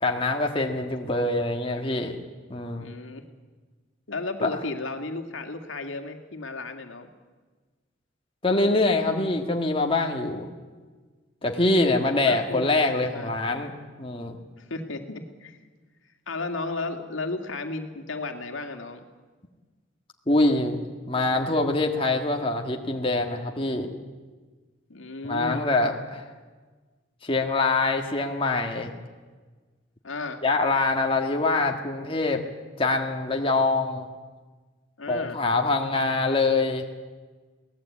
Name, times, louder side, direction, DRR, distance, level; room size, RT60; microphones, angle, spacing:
voice 1, 0.0-2.2 2.5-2.9 4.4-4.5 8.4-10.5 11.4-13.7 14.0-14.4 20.3-20.8 21.1-23.9 25.2-26.2 27.2-28.9 30.4-32.4 32.8-34.1 35.1-36.9, left 2 dB, 25° left, 2 dB, 1.7 m, -24 dB
voice 2, 2.8-3.2 4.1-7.1 12.2-12.7 13.1-13.3 14.6-15.6 16.3-19.0 24.9-25.6 30.0-30.4 35.0-35.4, left 3 dB, 80° left, 5 dB, 2.2 m, -34 dB
23.5 x 18.0 x 8.6 m, 1.4 s
head